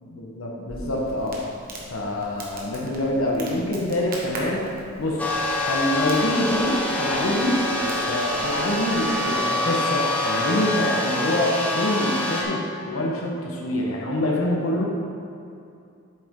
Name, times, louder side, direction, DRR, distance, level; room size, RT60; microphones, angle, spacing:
voice 1, 0.2-1.4 1.9-4.7 5.0-5.2 5.6-14.8, left 1 dB, 85° left, -2 dB, 1.2 m, -25 dB
Crackle, 0.7-9.4, right 1 dB, 45° right, 1.2 m, -41 dB
sound 1, 5.2-12.4, left 1 dB, 5° left, 0.8 m, -25 dB
8.4 x 7.0 x 3.7 m, 2.5 s
head